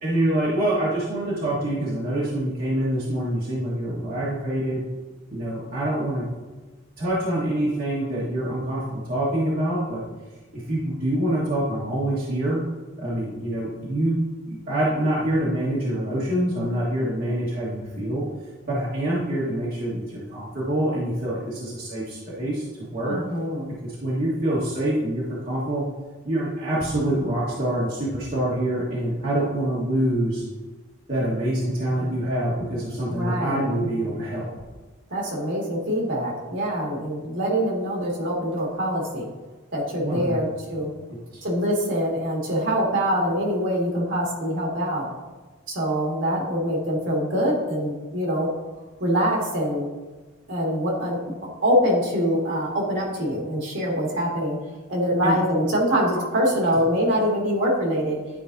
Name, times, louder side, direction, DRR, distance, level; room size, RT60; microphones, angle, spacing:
voice 1, 0.0-4.8 5.3-6.3 7.0-10.1 10.5-12.6 13.0-14.2 14.5-18.2 18.7-23.2 23.8-25.8 26.2-30.4 31.1-34.5 40.0-40.3 40.7-40.8 41.3-41.4 55.2-55.6, right 1 dB, 45° right, -7 dB, 1.5 m, -25 dB
voice 2, 23.0-23.7 33.1-33.6 35.1-39.3 39.7-40.9 41.4-45.1 45.7-48.5 49.0-49.9 50.5-51.2 51.6-54.6 54.9-58.2, equal, 65° right, -2 dB, 2.0 m, -24 dB
10.5 x 4.9 x 2.7 m, 1.3 s
head